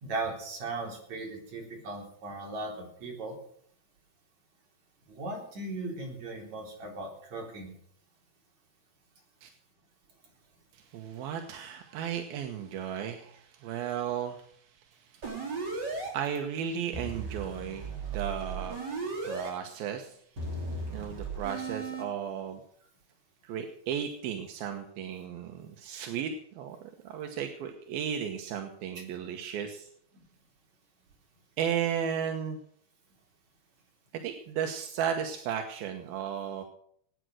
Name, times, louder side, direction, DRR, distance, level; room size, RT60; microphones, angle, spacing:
voice 1, 0.0-3.3 5.1-7.7 28.9-29.0, right 2 dB, 50° right, -1 dB, 4.9 m, -37 dB
voice 2, 10.7-14.5 15.1-19.0 19.2-20.2 20.9-22.6 23.4-26.8 27.0-29.9 31.6-32.6 34.1-36.6, right 8 dB, 85° right, 4 dB, 3.0 m, -35 dB
sound 1, 15.2-16.1 16.9-19.5 20.4-22.0, right 3 dB, 30° right, 3.7 m, -36 dB
19.0 x 9.4 x 6.3 m, 0.65 s
omnidirectional pair, 4.2 m